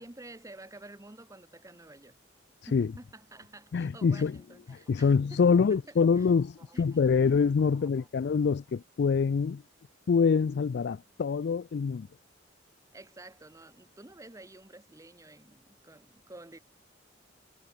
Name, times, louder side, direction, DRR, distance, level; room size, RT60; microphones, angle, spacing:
voice 1, 0.0-2.2 2.7-6.3 6.6-7.1 7.6-8.1 12.9-16.6, right 2 dB, 20° right, 1.0 m, -50 dB
voice 2, 3.7-4.4 4.7-9.6 10.1-12.1, left 5 dB, 60° left, 0.4 m, -25 dB
head